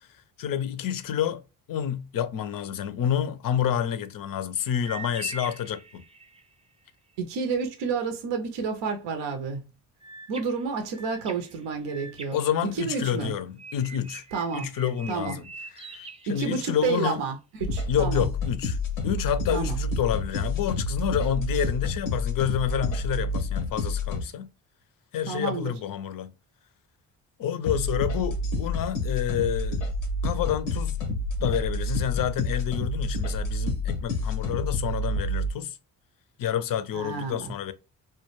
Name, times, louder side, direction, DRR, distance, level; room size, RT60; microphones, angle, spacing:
voice 1, 0.4-1.4 1.7-6.0 12.3-14.2 14.5-15.5 15.7-16.0 16.3-17.2 17.9-18.8 19.0-24.5 25.1-26.3 27.4-29.8 30.2-31.0 31.4-35.8 36.4-37.7, left 9 dB, 45° left, 0.5 m, -28 dB
sound 1, 4.8-6.5 10.0-13.2 13.6-17.0, right 3 dB, 15° right, 0.4 m, -43 dB
voice 2, 7.2-9.7 10.3-13.3 14.3-14.7 15.1-15.4 16.3-18.2 19.5-19.8 25.3-25.7 36.9-37.5, right 5 dB, 60° right, 0.6 m, -30 dB
sound 2, 17.6-24.2 27.6-35.5, left 2 dB, 90° left, 0.7 m, -29 dB
2.2 x 2.1 x 3.0 m
hypercardioid pair, 45°, 49 cm